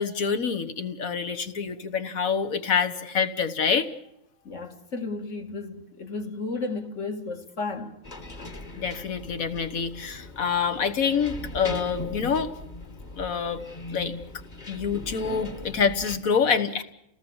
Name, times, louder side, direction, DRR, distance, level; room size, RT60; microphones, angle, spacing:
voice 1, 0.0-3.9 8.8-12.5 13.2-13.6 13.9-14.1 14.7-16.8, left 6 dB, 75° left, 1.8 m, -26 dB
voice 2, 4.4-8.0, left 3 dB, 60° left, 2.4 m, -33 dB
sound 1, 8.0-16.2, left 2 dB, 35° left, 1.6 m, -39 dB
29.5 x 18.5 x 7.2 m
omnidirectional pair, 1.5 m